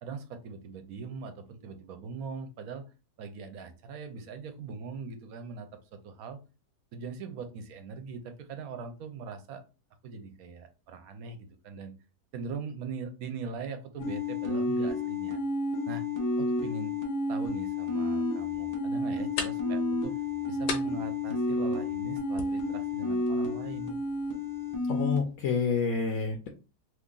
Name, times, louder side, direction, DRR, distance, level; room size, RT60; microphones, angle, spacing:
voice 1, 0.0-2.8 3.2-5.7 6.0-6.4 6.9-9.6 10.0-11.9 12.3-15.4 15.9-16.0 16.4-16.9 17.3-20.1 20.5-24.0, right 5 dB, 70° right, 8 dB, 1.0 m, -41 dB
sound 1, 14.0-25.2, left 2 dB, 30° left, 0.3 m, -31 dB
sound 2, 18.4-25.4, left 5 dB, 85° left, 1.3 m, -43 dB
voice 2, 24.9-26.5, left 5 dB, 65° left, 3 dB, 0.8 m, -28 dB
2.8 x 2.5 x 3.7 m, 0.31 s
omnidirectional pair, 1.7 m